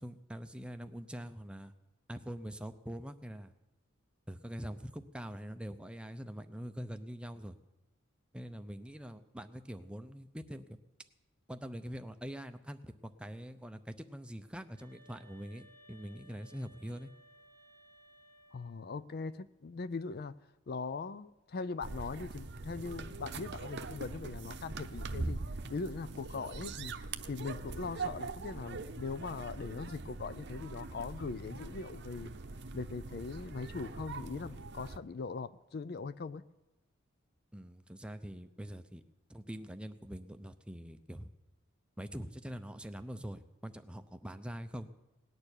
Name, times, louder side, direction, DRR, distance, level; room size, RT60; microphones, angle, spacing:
voice 1, 0.0-1.7 2.1-3.5 4.3-7.6 8.3-10.8 11.5-12.9 13.2-17.1 37.5-39.0 39.3-41.3 42.0-44.9, equal, 5° right, 9 dB, 0.6 m, -44 dB
sound 1, 14.7-18.9, equal, 15° left, 1.8 m, -61 dB
voice 2, 18.5-20.3 20.7-25.4 25.7-26.9 27.3-32.3 32.7-36.4, left 4 dB, 45° left, 15 dB, 0.4 m, -40 dB
sound 2, 21.8-35.0, right 3 dB, 55° right, 0.8 m, -42 dB
18.5 x 6.8 x 9.8 m, 1.0 s
head